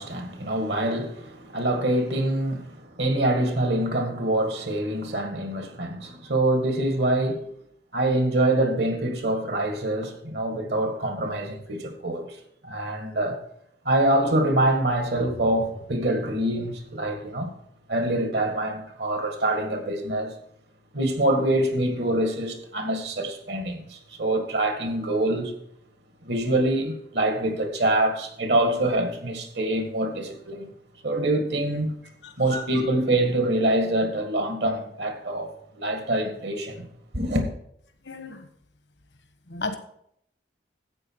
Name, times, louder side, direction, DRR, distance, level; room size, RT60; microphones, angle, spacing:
voice 1, 0.0-7.5 7.9-12.3 12.6-13.4 13.9-17.5 17.9-20.3 20.9-25.5 26.2-30.7 31.0-32.0 32.4-35.5 35.8-36.9 37.1-37.5, right 1 dB, 70° right, 2.0 m, -25 dB
voice 2, 38.0-38.5 39.5-39.7, left 3 dB, 85° left, 1.4 m, -33 dB
13.0 x 8.7 x 4.7 m
head